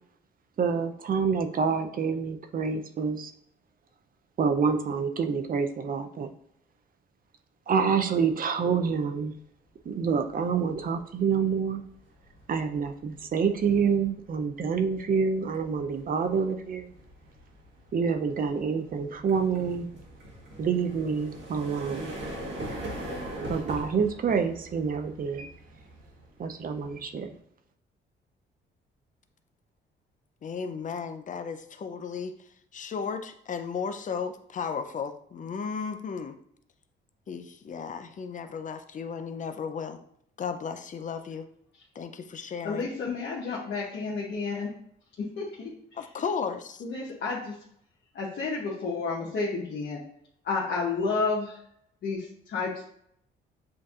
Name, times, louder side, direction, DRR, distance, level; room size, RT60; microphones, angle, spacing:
voice 1, 0.6-3.3 4.4-6.3 7.7-9.3 9.9-11.8 12.5-16.9 17.9-19.9 20.6-22.2 23.4-25.5 26.4-27.3, right 6 dB, 45° right, 7 dB, 0.6 m, -27 dB
sound 1, 10.0-10.3 10.7-27.4, right 1 dB, 65° right, 1.4 m, -42 dB
voice 2, 30.4-32.3 32.7-36.4 37.3-40.0 40.4-41.5 41.9-42.9 45.9-46.8, left 6 dB, 40° left, 8 dB, 0.5 m, -34 dB
voice 3, 42.6-44.7 45.4-45.7 46.8-47.5 48.1-50.0 50.4-51.5 52.0-52.8, left 4 dB, 60° left, -5 dB, 1.1 m, -30 dB
7.6 x 2.6 x 2.5 m, 0.70 s
cardioid pair, 90°, 20 cm